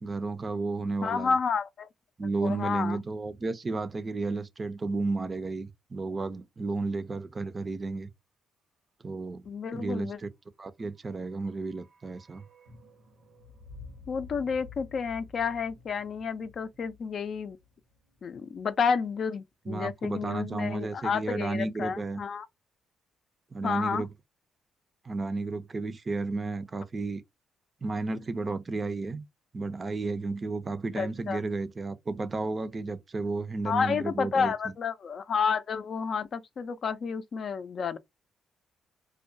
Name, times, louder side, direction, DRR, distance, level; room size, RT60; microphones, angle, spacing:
voice 1, 0.0-1.4 2.2-8.1 9.0-9.5 9.7-10.3 10.6-12.4 19.7-22.2 23.5-24.1 25.0-27.2 27.8-29.2 29.5-34.7, right 3 dB, 35° right, 0.4 m, -32 dB
voice 2, 1.0-1.9 2.4-3.0 9.5-10.2 14.1-17.6 18.2-22.5 23.6-24.0 31.0-31.4 33.6-38.0, left 6 dB, 55° left, 0.4 m, -30 dB
sound 1, 11.0-19.1 19.4-19.5, left 4 dB, 85° right, 0.9 m, -52 dB
2.3 x 2.1 x 2.6 m
cardioid pair, 75°, 0 cm